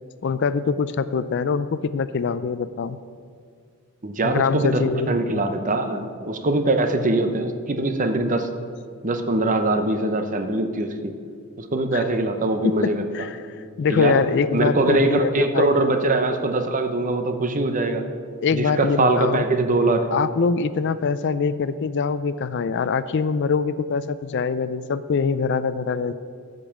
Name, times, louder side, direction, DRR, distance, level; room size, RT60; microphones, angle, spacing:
voice 1, 0.2-3.0 4.2-5.4 12.6-13.4 13.8-15.8 18.4-19.5 20.1-26.1, left 5 dB, 55° left, 14 dB, 0.4 m, -24 dB
voice 2, 4.0-8.5 9.0-11.1 11.6-13.1 13.9-18.0 18.5-20.2, right 2 dB, 35° right, 7 dB, 0.8 m, -22 dB
14.0 x 5.4 x 7.0 m, 2.2 s
head